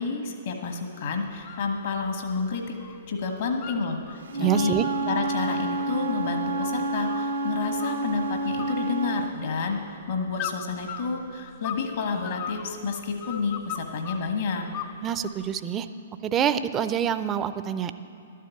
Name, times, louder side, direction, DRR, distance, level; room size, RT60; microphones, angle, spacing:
voice 1, 0.0-2.7 3.1-4.8 5.1-14.7, left 4 dB, 65° left, 4 dB, 1.2 m, -30 dB
sound 1, 1.3-1.7 2.0-3.0 3.2-4.2 4.6-7.4 7.8-8.3 8.6-9.5 10.4-11.9 12.2-14.3 14.7-15.5, left 9 dB, 35° left, 0.6 m, -38 dB
Wind instrument woodwind instrument, 4.3-9.3, right 2 dB, 75° right, 0.8 m, -29 dB
voice 2, 4.4-4.8 15.0-15.9 16.2-17.9, right 9 dB, 25° right, 12 dB, 0.5 m, -26 dB
12.0 x 7.5 x 8.3 m, 2.6 s
hypercardioid pair, 120°, 0 cm